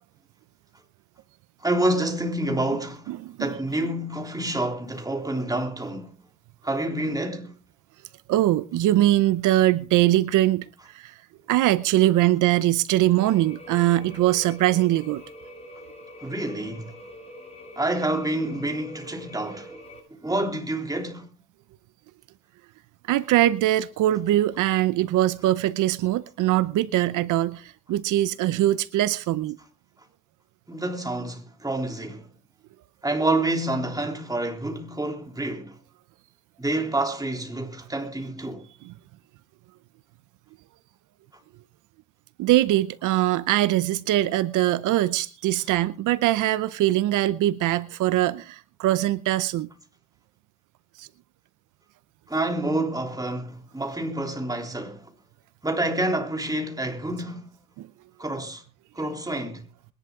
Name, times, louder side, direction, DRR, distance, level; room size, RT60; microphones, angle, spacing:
voice 1, 1.6-3.1 3.4-6.1 6.6-7.6 16.2-16.9 17.8-19.8 20.1-21.3 28.5-28.6 30.7-32.3 33.0-35.8 36.6-38.7 52.3-55.1 55.6-57.5 58.2-58.6 58.9-59.7, right 1 dB, 10° right, 3.4 m, -28 dB
voice 2, 3.1-3.5 8.3-10.7 10.9-11.1 11.5-15.2 23.1-29.6 42.4-49.7 51.0-51.1 57.8-57.9, right 14 dB, 85° right, 0.7 m, -22 dB
sound 1, 13.2-20.0, left 1 dB, 20° left, 7.5 m, -44 dB
22.0 x 11.0 x 3.7 m
cardioid pair, 90°, 30 cm